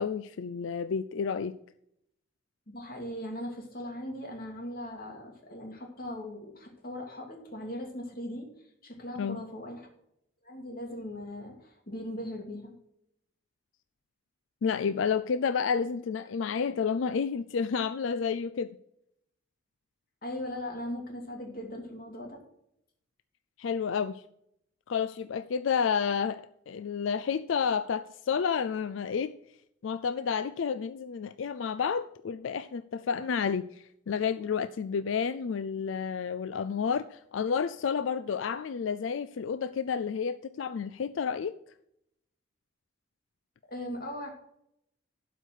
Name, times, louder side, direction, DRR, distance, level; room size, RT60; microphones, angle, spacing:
voice 1, 0.0-1.5 9.2-9.4 14.6-18.7 23.6-24.2 24.9-29.4 29.8-41.5, left 6 dB, 90° left, 0.4 m, -30 dB
voice 2, 2.7-8.5 8.8-9.9 10.4-12.8 20.2-22.4 43.7-44.3, left 1 dB, 50° left, 2.5 m, -39 dB
12.0 x 5.0 x 6.4 m
head